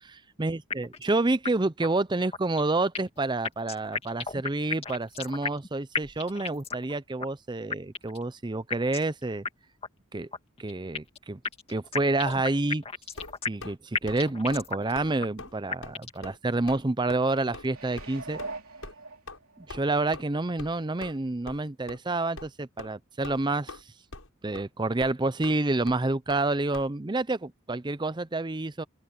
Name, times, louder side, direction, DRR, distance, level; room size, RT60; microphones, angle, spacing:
voice 1, 0.0-9.5 10.1-10.3 10.6-11.4 11.7-12.8 13.5-18.4 19.6-23.8 24.4-28.8, right 2 dB, 20° right, 0.6 m, -28 dB
sound 1, 0.7-1.1 1.5-1.6 1.8-1.9 2.3-3.2 3.5-5.7 6.0-6.9 7.2-7.3 7.7-8.2 8.7-9.1 9.5-9.6 9.8-9.9 10.3-11.2 11.5-13.7 14.0-14.9 15.2-15.3 15.7-16.2, left 5 dB, 30° left, 2.1 m, -33 dB
sound 2, 13.2-13.8 14.1-14.2 14.5-14.7 14.9-15.1 15.4-15.5 15.8-16.0 16.2-16.4 16.7-16.8 17.1-17.2 17.5-17.7 18.0-18.1 18.4-18.5 18.8-18.9 19.3-19.4 19.7-19.8 20.1-20.2 20.6-20.7 21.0-21.2 21.5-21.6 21.9-22.0 22.4-22.5 22.8-22.9 23.2-23.8 24.1-24.3 24.5-24.6 25.0-25.1 25.4-25.5 25.9-26.0 26.3-26.4 26.7-26.9, left 2 dB, 80° left, 6.8 m, -42 dB
sound 3, 17.6-19.7 20.2-20.3, right 3 dB, 85° right, 2.7 m, -41 dB
open air
head